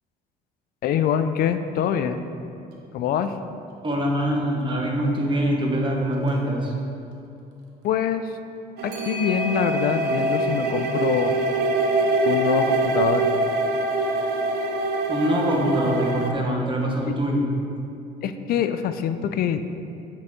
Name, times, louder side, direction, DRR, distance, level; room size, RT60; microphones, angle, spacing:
voice 1, 0.8-2.2 2.9-3.3 7.8-8.3 8.8-11.4 12.3-13.3 17.1-17.2 18.2-19.6, left 8 dB, 60° left, 10 dB, 0.4 m, -24 dB
Clock, 2.7-2.8 3.2-3.3 6.1-6.4 8.9-13.1, left 1 dB, 90° right, 0.9 m, -38 dB
voice 2, 3.8-6.7 15.1-17.4, equal, 30° right, -1 dB, 1.1 m, -24 dB
sound 1, 8.8-16.3, right 2 dB, 70° right, 0.5 m, -24 dB
7.9 x 4.0 x 3.5 m, 2.6 s
cardioid pair, 110°, 17 cm